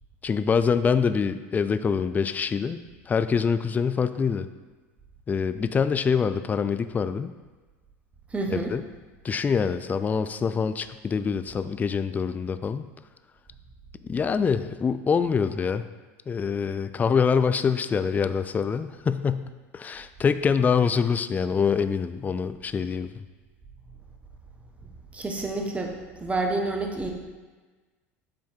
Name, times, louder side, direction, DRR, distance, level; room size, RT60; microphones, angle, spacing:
voice 1, 0.2-2.8 3.1-4.5 5.3-7.3 8.5-8.8 9.2-12.9 14.0-15.9 16.3-23.2, left 6 dB, 20° left, 11 dB, 0.3 m, -25 dB
voice 2, 8.3-8.7 24.8-25.9 26.2-27.1, right 2 dB, 15° right, 2 dB, 1.1 m, -29 dB
7.6 x 3.5 x 4.4 m, 1.3 s
hypercardioid pair, 80°, 8 cm